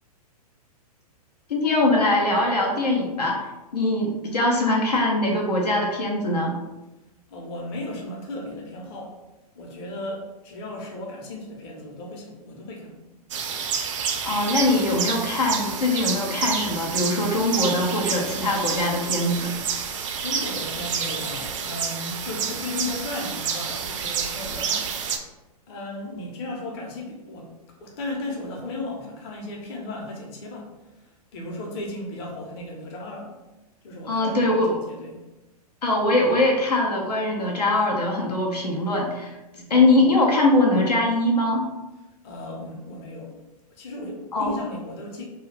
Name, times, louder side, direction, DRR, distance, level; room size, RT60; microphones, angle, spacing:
voice 1, 1.5-3.4 3.7-6.5 14.2-19.5 34.1-34.8 35.8-39.3 39.7-41.6 44.3-44.5, left 2 dB, 80° left, -1 dB, 0.6 m, -22 dB
voice 2, 7.3-9.2 9.5-13.0 20.2-25.0 25.7-30.7 31.0-33.4 33.8-35.2 39.5-39.7 42.2-43.4 43.7-45.2, left 2 dB, 40° left, -1 dB, 0.7 m, -35 dB
sound 1, 13.3-25.2, right 7 dB, 50° right, 0.4 m, -29 dB
2.3 x 2.3 x 3.3 m, 1.0 s
figure-of-eight pair, 115°, 20 cm